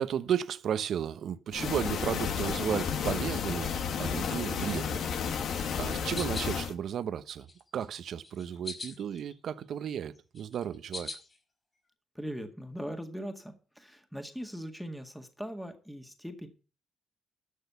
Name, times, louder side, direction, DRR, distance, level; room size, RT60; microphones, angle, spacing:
voice 1, 0.0-5.1 5.8-7.5 7.7-11.1, right 9 dB, 65° right, 0.8 m, -34 dB
sound 1, 1.5-6.7, left 7 dB, 65° left, 1.4 m, -32 dB
sound 2, 5.6-6.5 7.0-7.9 8.2-9.3 9.6-11.4, left 3 dB, 30° left, 4.9 m, -42 dB
voice 2, 12.2-16.5, equal, ahead, 1.9 m, -40 dB
12.5 x 6.5 x 6.9 m
cardioid pair, 90°, 0 cm